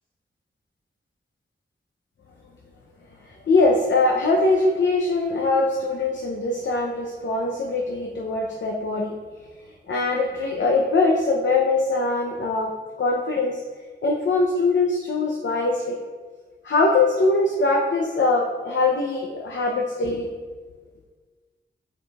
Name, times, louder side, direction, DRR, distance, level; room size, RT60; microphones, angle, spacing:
voice 1, 3.5-9.1 9.9-12.7 13.0-13.6 14.0-16.0 16.6-20.3, left 3 dB, 70° left, 0 dB, 0.7 m, -22 dB
9.3 x 4.8 x 2.4 m, 1.4 s
wide cardioid pair, 120°, 20 cm